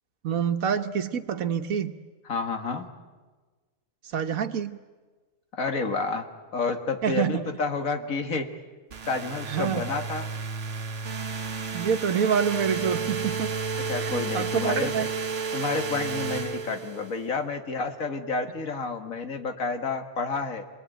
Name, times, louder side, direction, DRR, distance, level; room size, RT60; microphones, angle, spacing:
voice 1, 0.2-2.0 4.0-4.8 7.0-7.5 9.5-9.9 11.7-13.5 14.0-15.1, right 7 dB, 90° right, 8 dB, 1.6 m, -27 dB
voice 2, 2.3-2.9 5.6-6.3 6.5-8.5 9.1-10.3 13.9-15.1 15.5-20.6, left 4 dB, 75° left, 6 dB, 2.3 m, -30 dB
sound 1, 8.9-17.2, right 5 dB, 60° right, 1.4 m, -32 dB
28.0 x 21.0 x 9.1 m, 1.3 s
omnidirectional pair, 1.4 m